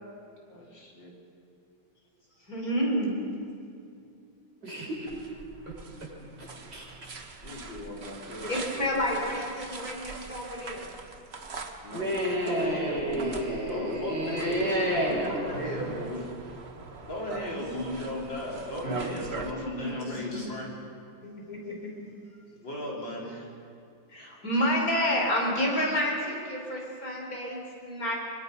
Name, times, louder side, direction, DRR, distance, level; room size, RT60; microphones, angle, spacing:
voice 1, 0.5-1.1 7.4-9.1 11.8-12.1 12.4-16.4 17.1-20.7 22.6-23.5, left 1 dB, 75° left, -3 dB, 5.0 m, -36 dB
voice 2, 2.5-3.2 8.5-10.9 17.6-18.0 18.8-18.9 19.6-20.5 21.2-21.9 24.1-28.1, equal, 50° left, -2 dB, 5.2 m, -30 dB
voice 3, 4.6-5.1 6.4-7.1 11.9-15.4, equal, 60° right, -4 dB, 6.7 m, -30 dB
sound 1, 5.1-19.5, right 4 dB, 35° right, 1.4 m, -42 dB
25.0 x 24.0 x 5.6 m, 2.5 s
omnidirectional pair, 2.1 m